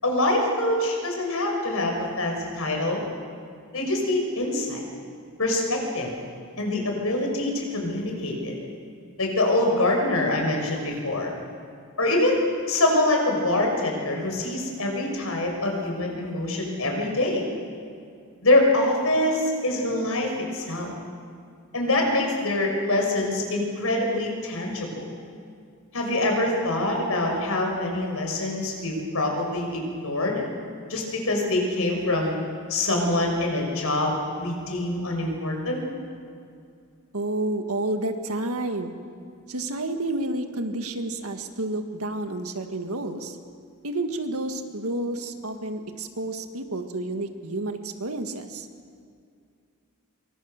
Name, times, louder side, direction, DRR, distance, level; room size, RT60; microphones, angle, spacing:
voice 1, 0.0-3.0 3.7-4.8 5.4-6.1 6.6-8.5 9.2-11.3 12.0-17.4 18.4-20.9 21.7-25.0 25.9-30.4 30.9-32.4 32.7-34.1 34.4-35.8, left 2 dB, 75° left, 1 dB, 6.1 m, -25 dB
voice 2, 37.1-38.9 39.5-43.4 43.8-48.7, right 2 dB, 90° right, 6 dB, 1.9 m, -30 dB
25.0 x 23.5 x 6.7 m, 2.3 s
head